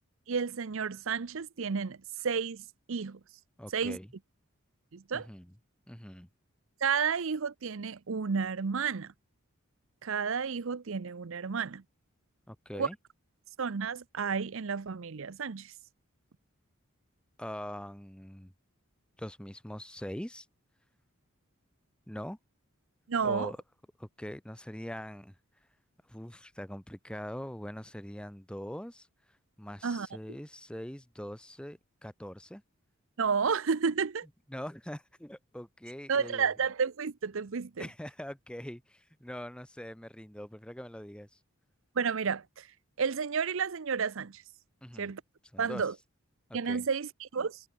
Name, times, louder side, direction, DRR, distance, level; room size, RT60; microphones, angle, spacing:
voice 1, 0.3-2.0 2.2-2.6 2.9-3.2 3.7-4.0 4.9-5.3 6.8-9.1 10.0-11.8 12.8-12.9 13.6-15.7 23.1-23.5 29.8-30.1 33.2-34.3 36.1-37.8 42.0-42.7 43.0-44.4 45.0-45.2 45.6-45.9 46.5-47.6, right 6 dB, 65° right, 0.6 m, -31 dB
voice 2, 3.6-4.1 5.1-5.5 5.9-6.3 12.5-13.0 17.4-18.5 19.2-20.5 22.1-22.4 23.2-23.6 24.0-25.3 26.1-29.1 29.6-32.6 34.5-36.5 37.8-41.4 44.8-45.1 45.5-45.8 46.5-46.8, equal, 5° left, 0.9 m, -42 dB
head